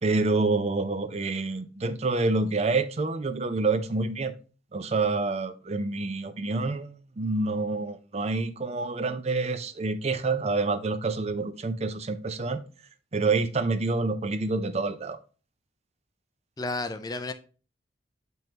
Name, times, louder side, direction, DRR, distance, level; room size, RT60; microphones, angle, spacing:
voice 1, 0.0-4.3 4.7-12.6 13.1-15.2, right 3 dB, 35° right, 0.5 m, -27 dB
voice 2, 16.6-17.3, left 2 dB, 20° left, 0.5 m, -32 dB
7.6 x 5.4 x 2.9 m
head